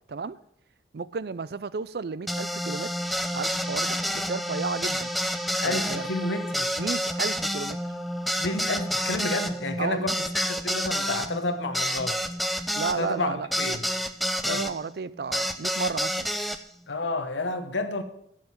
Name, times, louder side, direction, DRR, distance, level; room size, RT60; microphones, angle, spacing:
voice 1, 0.9-2.9 3.3-5.1 5.6-6.1 6.8-7.8 9.8-10.2 12.7-13.5 14.5-16.3, right 4 dB, 55° right, 0.4 m, -32 dB
sound 1, 2.3-14.7 15.3-16.6, equal, ahead, 0.5 m, -29 dB
voice 2, 5.6-6.7 8.4-12.2 12.9-13.9 14.4-14.7 16.9-18.0, left 2 dB, 80° left, 1.1 m, -30 dB
10.5 x 6.7 x 7.0 m
head